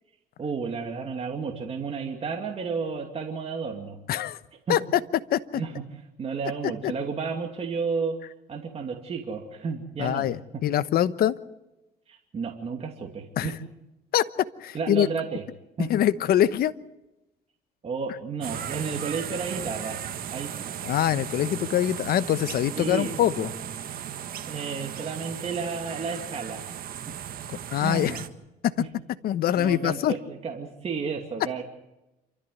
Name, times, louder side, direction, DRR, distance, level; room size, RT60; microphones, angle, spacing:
voice 1, 0.4-4.0 4.7-4.8 5.5-5.8 6.2-8.2 8.5-10.3 12.1-13.5 14.7-15.4 15.8-15.9 17.8-20.0 20.3-20.7 22.8-23.1 24.5-26.6 27.8-28.2 28.8-28.9 29.5-31.6, right 5 dB, 35° right, 2 dB, 2.5 m, -32 dB
voice 2, 4.1-4.4 4.7-5.0 5.3-5.6 6.6-6.9 10.0-11.3 13.4-13.5 14.1-14.2 14.6-15.1 15.9-16.7 20.8-23.5 27.7-28.2 28.6-28.7 29.2-30.1, left 11 dB, 65° left, 14 dB, 1.0 m, -24 dB
sound 1, 18.4-28.3, right 9 dB, 60° right, 1.6 m, -36 dB
27.5 x 13.5 x 9.3 m, 0.96 s
cardioid pair, 110°, 17 cm